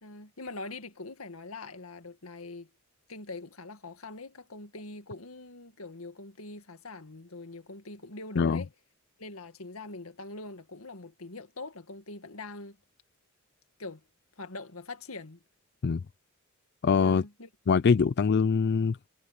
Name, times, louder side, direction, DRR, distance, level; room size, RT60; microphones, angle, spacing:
voice 1, 0.0-2.7 3.1-8.7 9.2-12.8 13.8-14.0 14.4-15.4 17.0-17.5, left 3 dB, 85° left, 2.0 m, -43 dB
voice 2, 16.8-17.2 17.7-19.1, left 5 dB, 50° left, 0.4 m, -23 dB
head